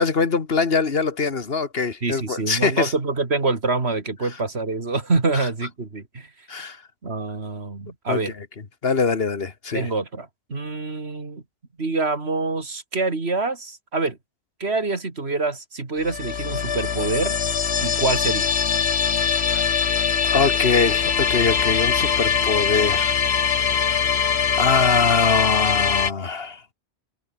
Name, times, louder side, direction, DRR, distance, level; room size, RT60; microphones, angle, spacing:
voice 1, 0.0-2.9 6.5-6.8 8.1-8.5 8.8-9.9 19.5-19.7 20.2-23.2 24.6-26.6, left 4 dB, 70° left, 1.9 m, -23 dB
voice 2, 2.0-6.3 7.0-8.3 9.7-11.4 11.8-14.2 14.6-17.4 17.8-18.5, right 3 dB, 85° right, 3.0 m, -26 dB
sound 1, 16.0-26.1, left 7 dB, 85° left, 1.4 m, -22 dB
open air
omnidirectional pair, 1.1 m